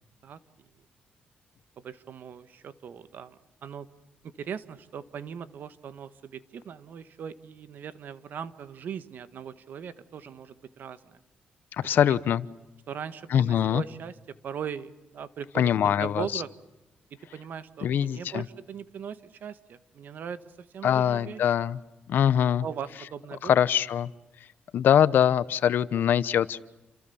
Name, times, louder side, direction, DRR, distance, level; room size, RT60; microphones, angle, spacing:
voice 1, 0.2-0.7 1.8-3.9 4.2-11.2 11.9-12.2 12.9-14.1 14.4-16.5 17.3-21.5 22.6-23.6, right 7 dB, 65° right, 13 dB, 1.6 m, -39 dB
voice 2, 11.7-12.4 13.3-13.8 15.5-16.4 17.8-18.4 20.8-21.8 22.1-22.6 23.4-24.1 24.7-26.6, left 9 dB, 70° left, 17 dB, 0.9 m, -23 dB
29.0 x 27.5 x 7.1 m, 0.99 s
cardioid pair, 105°, 3 cm